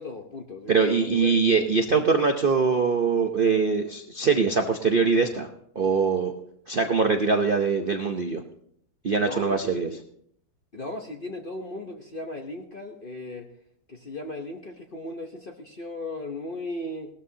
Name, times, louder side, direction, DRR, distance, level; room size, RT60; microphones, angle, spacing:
voice 1, 0.0-1.7 9.2-10.0 10.7-13.5 13.9-17.1, left 2 dB, 45° left, 3 dB, 0.7 m, -36 dB
voice 2, 0.7-5.5 5.7-6.3 6.7-8.4 9.0-9.9, right 5 dB, 85° right, 4 dB, 0.4 m, -23 dB
18.5 x 13.0 x 2.8 m, 0.67 s
omnidirectional pair, 2.2 m